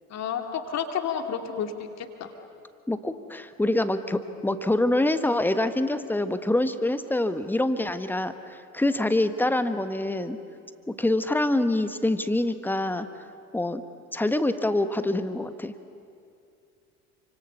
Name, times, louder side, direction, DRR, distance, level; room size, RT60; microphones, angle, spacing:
voice 1, 0.1-1.7 2.0-2.3, left 7 dB, 40° left, 5 dB, 2.6 m, -30 dB
voice 2, 2.9-10.4 10.9-13.1 13.5-13.8 14.1-15.7, left 1 dB, 5° left, 11 dB, 1.3 m, -25 dB
29.5 x 25.5 x 6.8 m, 2.5 s
figure-of-eight pair, 65°, 43 cm